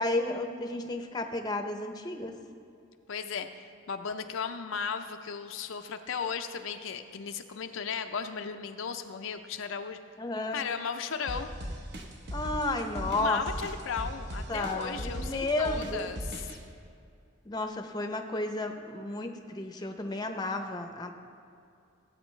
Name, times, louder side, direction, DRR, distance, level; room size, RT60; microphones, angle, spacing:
voice 1, 0.0-2.4 10.2-10.6 12.3-13.4 14.5-16.1 17.5-21.1, left 2 dB, 20° left, 5 dB, 0.6 m, -32 dB
voice 2, 3.1-10.0 10.5-11.5 13.1-16.5, left 6 dB, 75° left, 7 dB, 0.5 m, -36 dB
sound 1, 11.3-16.6, equal, 55° right, 1.0 m, -37 dB
16.0 x 8.2 x 3.2 m, 2.4 s
head